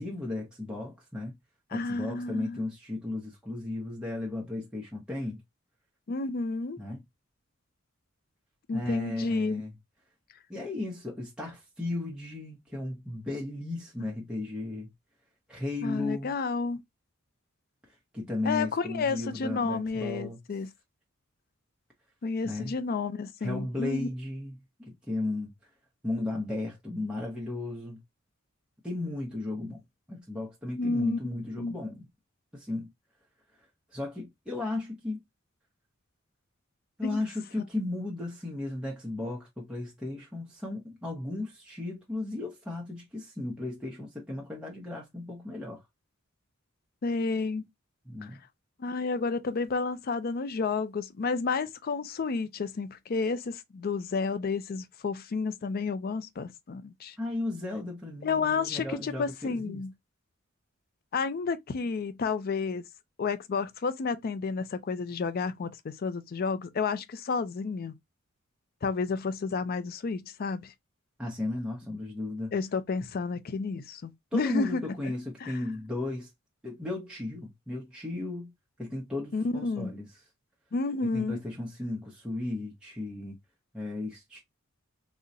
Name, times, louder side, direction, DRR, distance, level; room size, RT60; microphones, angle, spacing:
voice 1, 0.0-1.4 1.7-5.4 6.8-7.0 8.7-9.7 10.5-14.9 15.5-16.3 17.9-20.4 22.4-22.7 23.4-25.5 26.0-28.0 28.8-29.8 30.1-32.1 32.5-32.9 33.9-35.2 37.0-45.8 48.0-48.4 57.2-59.8 71.2-72.5 74.3-76.3 76.6-78.5 78.8-80.1 81.0-83.4 83.7-84.4, left 2 dB, 5° right, 0.7 m, -35 dB
voice 2, 1.7-2.6 6.1-6.8 8.7-9.6 15.8-16.8 18.5-20.7 22.2-24.1 30.8-31.2 31.6-31.8 37.0-37.2 47.0-47.6 48.8-57.2 58.2-59.9 61.1-62.8 63.2-67.9 68.8-70.7 72.5-74.8 75.4-75.6 79.3-79.9 80.7-81.4, left 4 dB, 45° left, 0.4 m, -31 dB
3.7 x 2.1 x 2.6 m
head